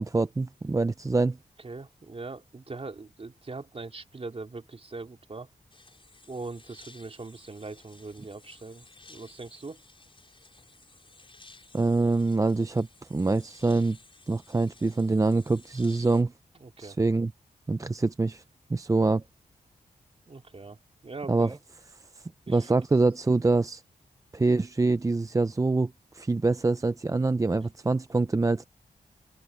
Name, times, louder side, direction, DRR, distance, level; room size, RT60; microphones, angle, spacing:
voice 1, 0.0-1.4 11.7-14.0 14.3-16.3 16.8-17.3 17.7-18.4 18.7-19.2 21.3-21.5 22.5-23.8 24.3-28.7, right 3 dB, 20° right, 0.5 m, -25 dB
voice 2, 1.6-5.5 6.3-9.8 16.6-17.0 20.3-20.8 21.0-21.5 22.5-22.8, right 3 dB, 40° right, 3.1 m, -41 dB
sound 1, 5.7-16.2, left 3 dB, 35° left, 6.1 m, -55 dB
open air
wide cardioid pair, 85°, 16 cm